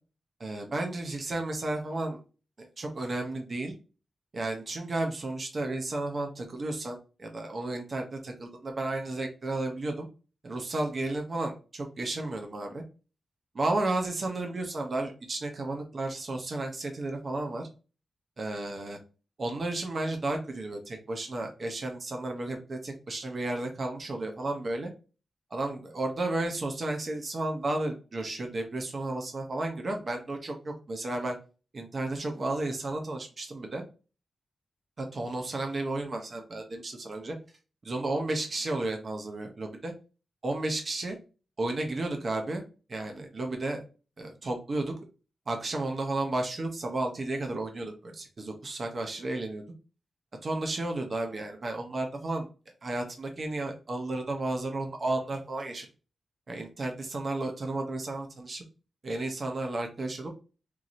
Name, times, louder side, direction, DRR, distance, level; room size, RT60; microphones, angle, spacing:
voice 1, 0.4-2.2 2.6-3.7 4.3-10.1 10.4-12.8 13.5-17.7 18.4-19.0 19.4-24.9 25.5-31.4 31.7-33.8 35.0-37.4 37.8-39.9 40.4-41.2 41.6-42.6 42.9-43.8 44.2-44.9 45.5-49.6 50.4-52.5 52.8-55.9 56.5-58.6 59.0-60.3, right 2 dB, 40° right, 3 dB, 0.7 m, -33 dB
4.6 x 2.7 x 2.5 m, 0.34 s
wide cardioid pair, 135°, 0 cm